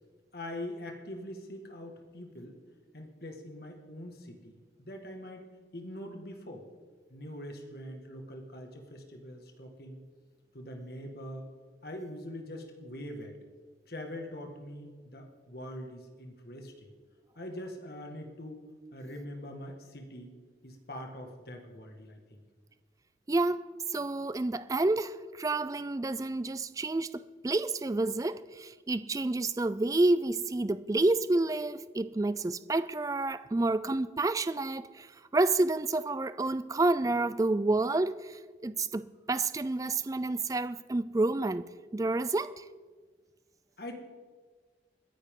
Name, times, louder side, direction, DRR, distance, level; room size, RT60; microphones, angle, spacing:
voice 1, 0.3-2.6 2.9-5.5 5.7-6.7 7.1-10.0 10.5-11.5 11.8-13.4 13.9-16.7 17.4-18.6 18.9-20.3 20.6-22.4 43.8-43.9, left 1 dB, 60° left, 1.8 m, -43 dB
voice 2, 23.3-35.1 35.3-41.6 41.9-42.6, right 2 dB, 20° right, 0.3 m, -29 dB
29.0 x 10.0 x 3.8 m
head